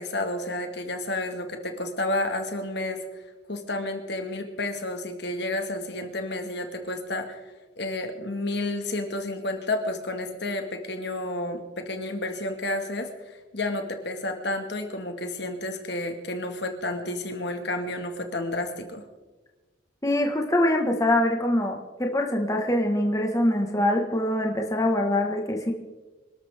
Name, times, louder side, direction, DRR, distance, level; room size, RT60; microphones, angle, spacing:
voice 1, 0.0-3.0 3.5-7.4 7.8-19.1, left 2 dB, 55° left, 5 dB, 1.9 m, -31 dB
voice 2, 20.0-25.7, left 1 dB, 15° left, 2 dB, 1.7 m, -24 dB
26.5 x 12.5 x 3.7 m, 1.2 s
head